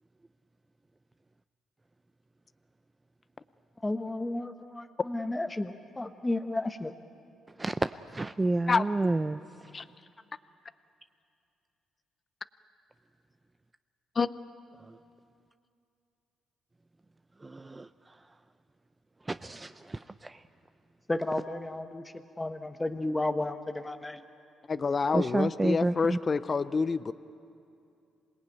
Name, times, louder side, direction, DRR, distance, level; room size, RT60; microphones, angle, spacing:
voice 1, 3.8-6.9 21.1-22.0 22.4-24.2, left 2 dB, 15° left, 7 dB, 1.0 m, -32 dB
voice 2, 7.6-9.4 14.8-15.0 17.4-17.9 19.3-20.4 25.1-26.2, right 2 dB, 20° right, 11 dB, 0.5 m, -30 dB
voice 3, 24.7-27.1, left 4 dB, 35° left, 13 dB, 0.6 m, -27 dB
26.5 x 18.5 x 9.2 m, 2.5 s
cardioid pair, 90°, 0 cm